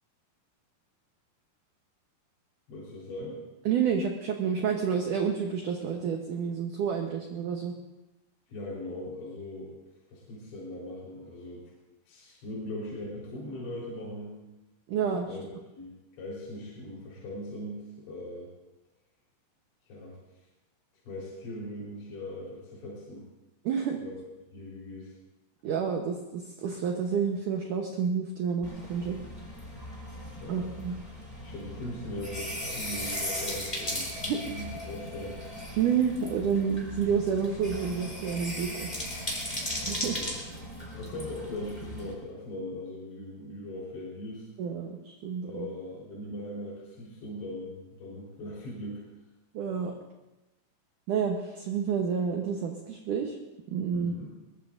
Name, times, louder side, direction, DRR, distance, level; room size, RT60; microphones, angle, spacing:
voice 1, 2.7-3.4 8.5-9.8 10.1-11.7 12.1-14.4 15.3-15.4 15.7-18.5 19.9-20.2 21.1-23.3 24.0-24.1 24.5-25.1 30.4-30.9 31.4-35.4 40.1-40.3 40.9-44.5 45.5-49.0 53.9-54.3, left 1 dB, 75° left, -6 dB, 6.4 m, -40 dB
voice 2, 3.7-7.7 14.9-15.3 23.7-24.0 25.6-29.2 30.5-31.0 34.3-34.4 35.8-38.9 39.9-40.2 44.6-45.7 49.5-50.0 51.1-53.4 53.7-54.1, right 7 dB, 80° right, 2 dB, 1.8 m, -29 dB
sound 1, 28.6-42.1, left 1 dB, 10° left, 3.7 m, -37 dB
22.5 x 21.5 x 2.6 m, 1.0 s
omnidirectional pair, 5.2 m